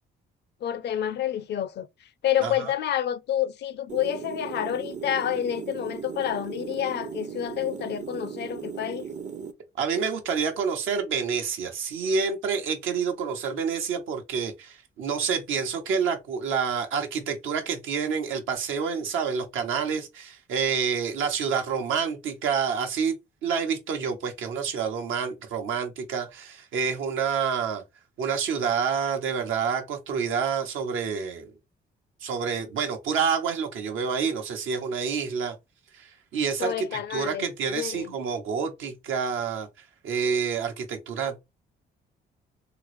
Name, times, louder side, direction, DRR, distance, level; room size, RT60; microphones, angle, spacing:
voice 1, 0.6-1.9 2.2-9.1 36.6-37.5 37.7-38.1, left 10 dB, 60° left, 0.4 m, -29 dB
voice 2, 2.4-2.7 9.8-23.2 23.4-27.8 28.2-31.5 32.2-35.5 35.9-39.7 40.0-41.4, right 6 dB, 80° right, 0.9 m, -28 dB
sound 1, 3.9-9.5, right 6 dB, 40° right, 0.5 m, -37 dB
3.8 x 2.0 x 3.0 m
cardioid pair, 90°, 20 cm